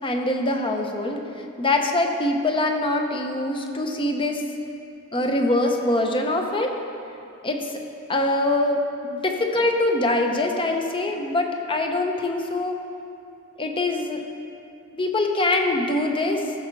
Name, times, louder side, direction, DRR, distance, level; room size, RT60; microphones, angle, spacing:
voice 1, 0.0-4.4 5.1-6.8 7.4-7.8 8.1-12.8 13.6-14.2 14.9-16.5, left 2 dB, 25° left, 3 dB, 0.8 m, -24 dB
14.0 x 6.8 x 4.1 m, 2.5 s
head